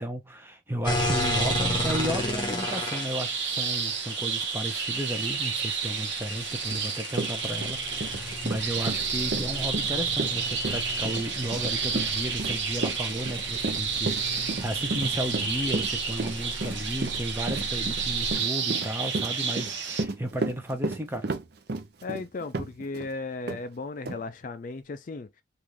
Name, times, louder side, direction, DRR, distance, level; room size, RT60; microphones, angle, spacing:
voice 1, 0.0-21.3, right 1 dB, 10° right, 0.7 m, -34 dB
sound 1, 0.8-18.3, left 2 dB, 25° left, 1.0 m, -35 dB
sound 2, 1.0-20.0, right 6 dB, 70° right, 1.0 m, -31 dB
Run, 6.7-6.8 7.1-23.1 23.5-23.6 24.0-24.2, right 3 dB, 55° right, 0.6 m, -33 dB
voice 2, 22.0-25.4, left 3 dB, 45° left, 0.4 m, -36 dB
3.6 x 2.5 x 3.0 m
head